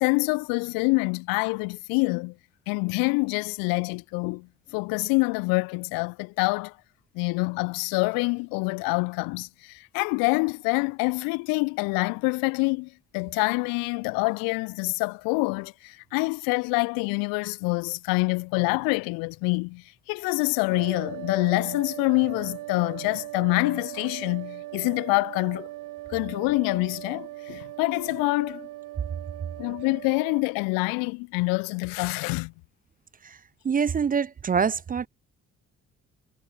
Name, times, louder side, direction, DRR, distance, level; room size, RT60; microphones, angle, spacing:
voice 1, 0.0-2.3 2.7-6.7 7.2-25.7 26.1-28.7 29.6-32.5, left 29 dB, 65° left, 0.5 m, -26 dB
sound 1, 20.7-30.4, right 17 dB, 55° right, 1.0 m, -39 dB
voice 2, 33.6-35.1, right 6 dB, 25° right, 0.5 m, -25 dB
figure-of-eight pair, 40°, 37 cm